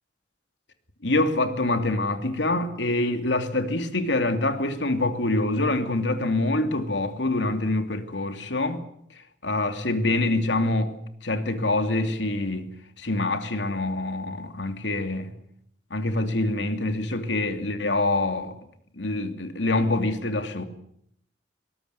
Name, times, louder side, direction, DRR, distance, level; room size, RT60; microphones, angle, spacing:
voice 1, 1.0-8.8 9.1-11.0 11.2-15.4 15.9-18.6 18.9-20.6, left 2 dB, 90° left, 2.9 m, -25 dB
22.5 x 19.5 x 9.4 m
head